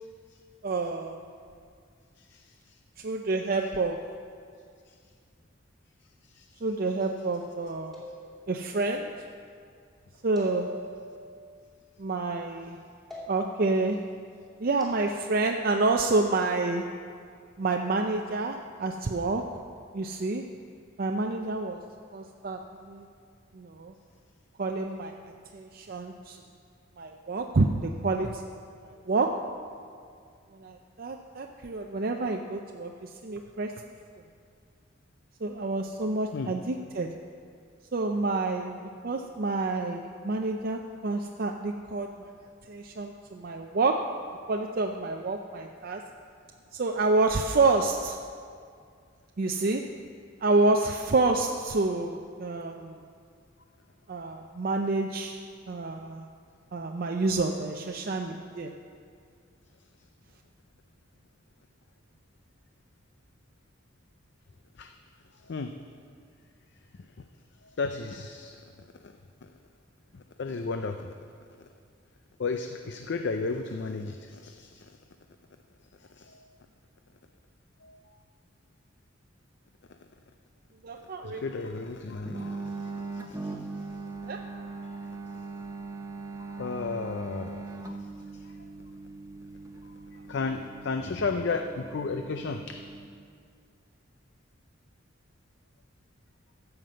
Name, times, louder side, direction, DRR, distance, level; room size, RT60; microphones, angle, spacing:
voice 1, 0.6-1.2 3.0-4.1 6.6-8.0 8.5-9.2 10.2-10.8 12.0-12.8 13.3-14.1 14.6-16.9 17.6-19.6 19.9-20.5 21.0-21.8 22.1-23.1 23.5-23.9 24.6-26.4 27.0-28.4 28.8-29.5 30.6-33.8 35.4-37.2 37.9-42.3 42.7-44.2 44.5-46.0 46.7-48.2 49.4-50.0 50.4-52.9 54.1-56.3 56.7-58.7 80.8-81.4 84.3-84.4, right 3 dB, 50° right, 2 dB, 0.5 m, -28 dB
sound 1, 7.9-8.7 10.4-11.3 13.1-13.7 14.8-15.0, left 1 dB, ahead, 2.8 m, -43 dB
voice 2, 67.8-68.6 69.0-69.1 70.1-71.1 72.4-74.9 76.2-76.4 77.8-78.0 81.2-83.5 84.2-85.0 86.4-88.0 90.3-92.8, left 4 dB, 60° left, 6 dB, 0.5 m, -34 dB
sound 2, 82.3-93.1, right 3 dB, 15° right, 0.8 m, -40 dB
14.5 x 5.9 x 7.6 m, 2.2 s
head